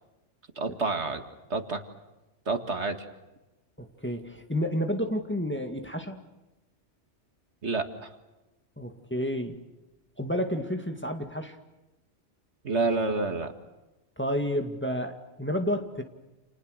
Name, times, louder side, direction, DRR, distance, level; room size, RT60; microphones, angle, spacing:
voice 1, 0.6-1.2 1.5-1.8 2.5-3.0 7.6-8.1 12.6-13.5, right 3 dB, 65° right, 7 dB, 2.3 m, -28 dB
voice 2, 3.8-6.2 8.8-9.6 10.2-11.6 14.2-16.0, equal, 10° left, 5 dB, 2.0 m, -30 dB
29.5 x 29.0 x 6.6 m, 1.0 s
omnidirectional pair, 1.2 m